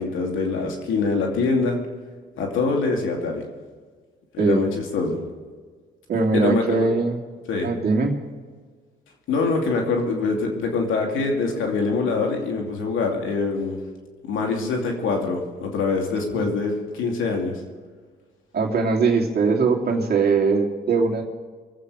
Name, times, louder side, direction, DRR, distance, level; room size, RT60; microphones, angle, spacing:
voice 1, 0.0-1.8 2.4-3.5 4.3-5.2 6.3-6.9 7.5-7.7 9.3-13.8 14.3-17.6, left 4 dB, 80° left, 1 dB, 2.7 m, -24 dB
voice 2, 4.4-4.7 6.1-7.2 7.6-8.2 16.3-16.5 18.5-21.2, right 4 dB, 55° right, -1 dB, 2.8 m, -21 dB
24.0 x 8.4 x 4.9 m, 1.5 s
cardioid pair, 90°, 20 cm